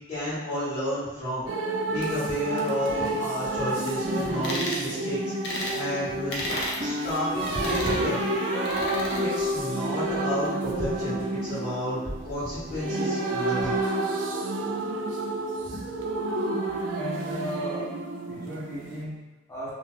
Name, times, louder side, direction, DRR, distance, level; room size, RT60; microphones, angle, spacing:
voice 1, 0.1-1.5 1.9-6.5 6.8-8.2 9.2-12.0 12.2-13.8, equal, 40° left, -16 dB, 1.2 m, -31 dB
sound 1, 1.5-19.0, right 2 dB, 80° right, 0.4 m, -30 dB
sound 2, 3.8-4.6 6.5-10.1, right 1 dB, 30° right, 0.6 m, -33 dB
sound 3, 4.4-4.8 5.4-5.8 6.3-6.8 7.5-8.0 8.6-9.2, left 1 dB, 60° left, 0.6 m, -32 dB
voice 2, 15.6-16.2 16.9-17.9 18.3-19.7, equal, 15° left, -10 dB, 0.7 m, -36 dB
2.5 x 2.4 x 3.2 m, 1.1 s
head